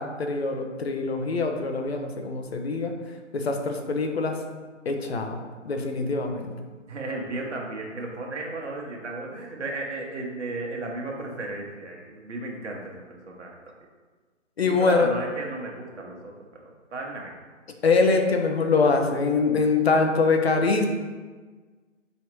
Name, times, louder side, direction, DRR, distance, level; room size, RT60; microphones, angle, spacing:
voice 1, 0.0-2.9 3.3-4.4 4.9-6.5 14.6-15.1 17.8-20.9, left 4 dB, 55° left, 4 dB, 0.6 m, -24 dB
voice 2, 6.9-13.6 14.6-16.3 16.6-17.4, right 2 dB, 65° right, 0 dB, 1.0 m, -34 dB
4.9 x 3.1 x 3.0 m, 1.4 s
hypercardioid pair, 160°, 38 cm